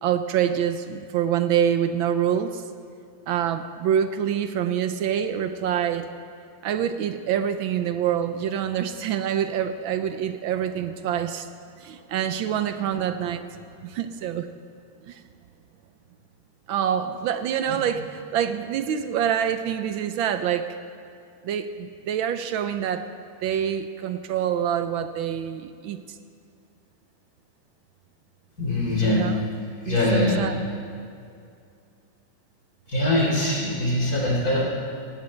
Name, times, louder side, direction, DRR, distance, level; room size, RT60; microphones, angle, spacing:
voice 1, 0.0-2.6 3.3-6.1 6.6-11.5 11.8-13.6 13.8-14.5 15.1-15.2 16.7-20.7 21.4-23.0 23.4-26.0 29.0-29.4 29.8-30.5, right 9 dB, 75° right, 9 dB, 1.4 m, -26 dB
voice 2, 28.6-29.3 29.8-30.4 32.9-34.6, left 1 dB, 45° left, -3 dB, 4.0 m, -22 dB
17.5 x 16.5 x 4.4 m, 2.4 s
omnidirectional pair, 2.2 m